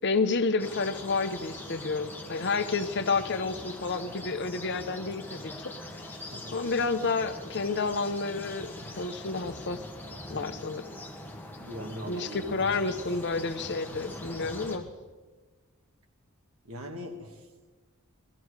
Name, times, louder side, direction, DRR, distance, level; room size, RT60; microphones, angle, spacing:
voice 1, 0.0-5.8 6.5-9.8 10.3-10.9 12.1-14.9, left 4 dB, 55° left, 9 dB, 0.9 m, -30 dB
sound 1, 0.6-14.8, left 1 dB, 10° left, 1.4 m, -42 dB
voice 2, 11.6-13.0 16.7-17.4, equal, 80° right, 4 dB, 1.8 m, -41 dB
18.5 x 14.0 x 4.8 m, 1.3 s
head